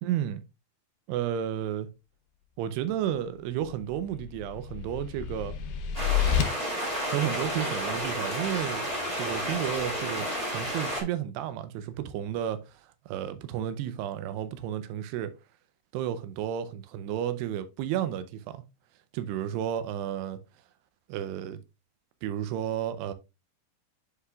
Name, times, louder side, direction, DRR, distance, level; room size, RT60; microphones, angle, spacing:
voice 1, 0.0-0.4 1.1-1.9 2.6-5.6 7.1-8.9 9.2-12.6 13.1-15.3 15.9-18.6 19.1-20.4 21.1-21.6 22.2-23.1, right 10 dB, 90° right, 2.8 m, -32 dB
sound 1, 3.6-6.4, left 9 dB, 70° left, 2.0 m, -29 dB
sound 2, 5.9-11.0, equal, 10° right, 1.9 m, -31 dB
9.9 x 4.8 x 2.3 m
omnidirectional pair, 4.7 m